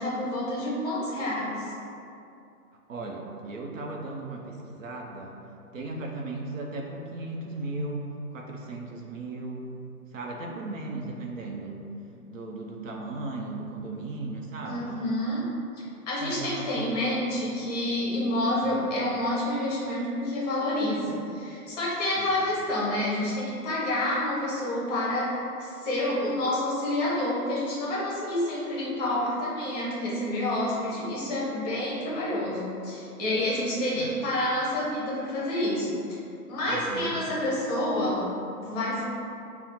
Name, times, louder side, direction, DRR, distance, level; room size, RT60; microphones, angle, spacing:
voice 1, 0.0-1.7 14.6-15.5 16.1-36.0 36.5-38.2 38.6-39.0, left 1 dB, 25° left, -6 dB, 0.7 m, -28 dB
voice 2, 2.9-5.4 5.7-9.7 10.1-11.8 12.3-14.9 16.2-17.1 18.6-18.9 22.2-22.3 34.0-34.2 36.6-37.2, right 2 dB, 60° right, 0 dB, 0.6 m, -36 dB
4.1 x 2.1 x 4.2 m, 2.6 s
figure-of-eight pair, 125°, 45 cm